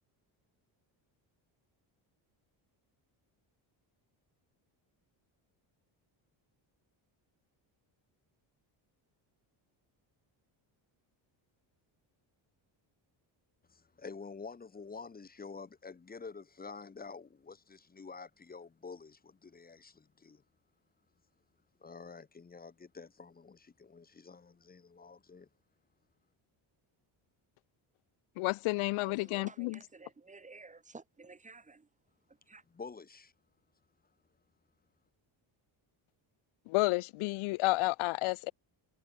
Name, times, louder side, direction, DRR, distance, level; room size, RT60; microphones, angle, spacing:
voice 1, 13.7-20.4 21.8-25.5 32.7-33.3, left 4 dB, 20° left, 1.7 m, -48 dB
voice 2, 28.4-29.8 36.7-38.5, left 23 dB, 85° left, 0.6 m, -31 dB
voice 3, 29.0-31.9 32.3-32.6, right 3 dB, 15° right, 2.5 m, -53 dB
cardioid pair, 165°, 48 cm